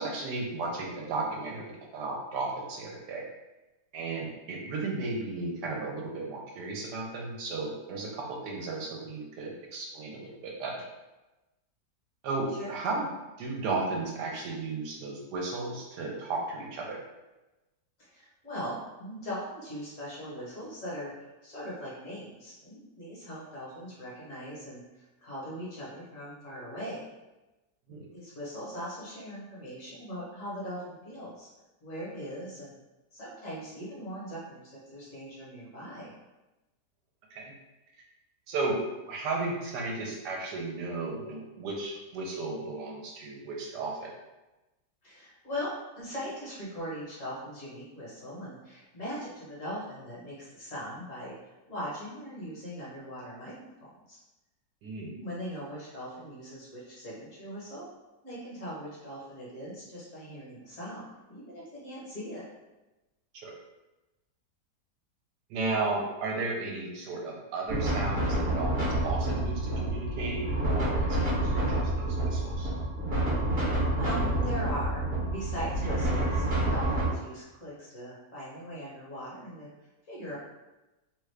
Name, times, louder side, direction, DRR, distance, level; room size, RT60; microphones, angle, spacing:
voice 1, 0.0-3.3 3.9-10.8 12.2-13.1 13.4-17.0 27.9-28.1 37.3-37.5 38.5-44.1 54.8-55.2 63.3-63.5 65.5-72.7, right 3 dB, 75° right, -1 dB, 1.2 m, -34 dB
voice 2, 18.0-21.1 21.4-27.0 27.9-31.5 31.8-32.8 33.1-36.1 45.0-51.3 51.7-53.5 53.8-54.2 55.0-57.9 58.2-62.4 73.5-79.7 80.1-80.3, equal, 55° left, -7 dB, 1.3 m, -40 dB
sound 1, 67.7-77.0, right 1 dB, 40° right, 1.0 m, -28 dB
3.0 x 2.4 x 3.2 m, 1.1 s
omnidirectional pair, 1.8 m